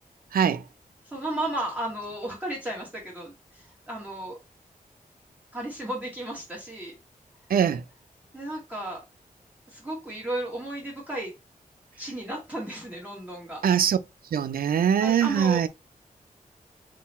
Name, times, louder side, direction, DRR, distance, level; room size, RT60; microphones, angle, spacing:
voice 1, 0.3-0.6 7.5-7.8 13.6-14.0 14.3-15.7, right 8 dB, 80° right, 0.4 m, -22 dB
voice 2, 1.0-4.4 5.5-6.9 8.3-9.0 9.7-11.3 12.0-13.6 15.0-15.7, right 1 dB, 10° right, 1.3 m, -34 dB
3.8 x 2.3 x 4.1 m
wide cardioid pair, 120°, 15 cm